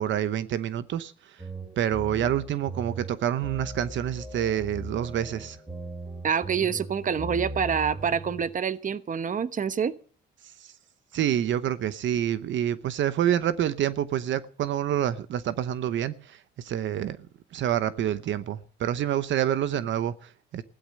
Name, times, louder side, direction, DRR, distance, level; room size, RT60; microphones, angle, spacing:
voice 1, 0.0-1.4 1.8-5.6 10.6-10.7 11.1-17.2 17.5-20.6, right 10 dB, 70° right, 0.9 m, -27 dB
sound 1, 1.4-8.4, right 2 dB, 20° right, 6.8 m, -39 dB
voice 2, 6.2-9.9, right 7 dB, 40° right, 1.1 m, -27 dB
16.5 x 11.5 x 6.5 m
cardioid pair, 90°, 20 cm